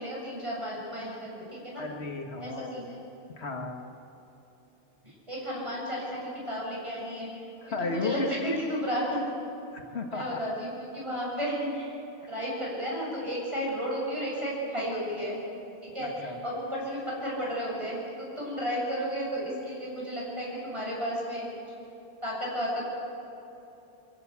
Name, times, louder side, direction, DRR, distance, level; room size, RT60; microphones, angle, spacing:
voice 1, 0.0-1.8 2.4-3.0 5.0-7.3 7.8-9.2 10.1-11.9 12.3-15.4 15.8-21.6 22.2-22.8, equal, 30° right, -5 dB, 7.5 m, -33 dB
voice 2, 1.8-2.8 3.4-3.8 7.6-8.6 9.7-10.4 16.0-16.4, left 3 dB, 75° left, 2 dB, 2.1 m, -34 dB
24.5 x 15.5 x 8.4 m, 3.0 s
omnidirectional pair, 1.1 m